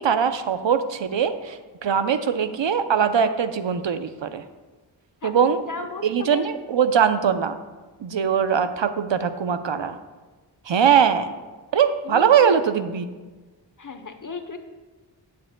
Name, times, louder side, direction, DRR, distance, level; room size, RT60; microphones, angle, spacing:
voice 1, 0.0-4.4 5.2-5.6 6.0-7.6 8.0-10.0 10.7-11.3 11.7-13.1, right 7 dB, 75° right, 10 dB, 0.6 m, -21 dB
voice 2, 5.7-6.5 12.0-12.5 13.8-14.6, left 5 dB, 45° left, 7 dB, 0.9 m, -34 dB
15.5 x 7.6 x 2.2 m, 1.3 s
wide cardioid pair, 55°, 45 cm